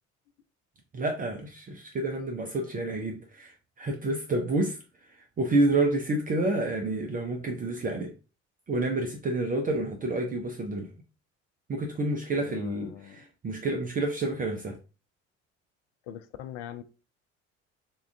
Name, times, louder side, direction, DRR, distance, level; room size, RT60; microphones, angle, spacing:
voice 1, 0.9-4.8 5.4-8.1 8.7-10.9 11.7-14.8, right 2 dB, 20° right, 0.6 m, -29 dB
voice 2, 12.3-13.3 16.1-16.8, left 10 dB, 50° left, 0.5 m, -42 dB
3.7 x 2.4 x 3.4 m
figure-of-eight pair, 55°, 38 cm